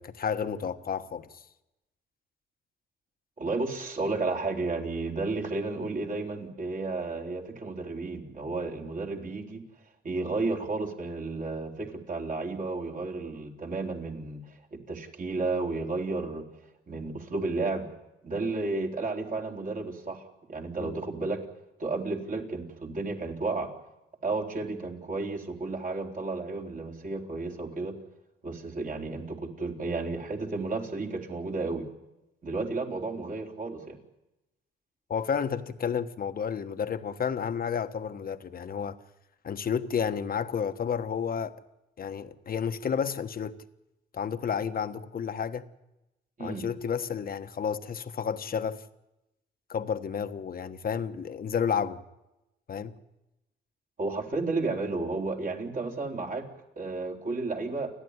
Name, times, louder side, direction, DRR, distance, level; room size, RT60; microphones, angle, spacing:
voice 1, 0.0-1.4 20.8-21.0 35.1-39.0 39.4-41.5 42.0-43.6 44.1-45.7 46.4-48.8 49.7-52.0 52.7-53.0, left 7 dB, 45° left, 1.4 m, -31 dB
voice 2, 3.4-9.6 10.0-16.4 16.9-17.9 18.2-21.4 21.8-23.7 24.2-27.9 28.4-31.9 32.4-34.0 46.4-46.7 54.0-56.4 56.8-57.9, right 3 dB, 40° right, 3.9 m, -32 dB
29.5 x 11.5 x 9.8 m
cardioid pair, 90°, 20 cm